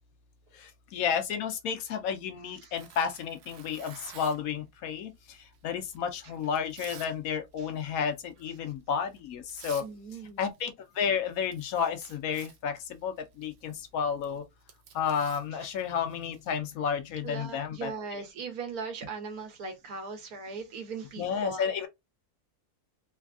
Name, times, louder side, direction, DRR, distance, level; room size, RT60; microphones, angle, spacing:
voice 1, 0.6-5.1 5.6-9.8 10.4-12.7 13.0-14.4 14.9-18.2 21.2-21.9, left 7 dB, 75° left, 1.1 m, -31 dB
Tearing, 2.7-4.5 5.3-7.1 7.5-7.8 8.2-8.5 9.1-9.2 9.5-9.9 10.2-11.0 11.3-16.5, right 8 dB, 65° right, 0.6 m, -51 dB
voice 2, 9.8-10.4 17.2-21.7, right 4 dB, 85° right, 1.4 m, -39 dB
3.4 x 2.4 x 2.3 m
omnidirectional pair, 1.6 m